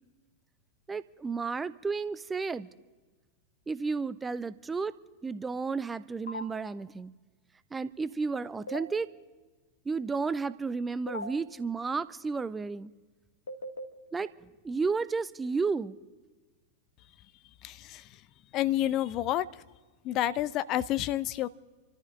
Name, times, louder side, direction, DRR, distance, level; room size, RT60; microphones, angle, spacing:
voice 1, 0.9-2.7 3.7-4.9 5.2-7.1 7.7-9.1 9.9-12.9 14.1-14.3 14.6-16.0, right 4 dB, 15° right, 16 dB, 0.5 m, -32 dB
sound 1, 6.3-6.4 8.7-8.8 11.1-11.3 13.5-13.8, left 1 dB, 70° left, 1.4 m, -37 dB
voice 2, 17.6-18.2 18.5-19.6 20.0-21.5, left 13 dB, 35° left, 17 dB, 0.5 m, -29 dB
28.0 x 13.5 x 3.8 m, 1.3 s
figure-of-eight pair, 90°, 0 cm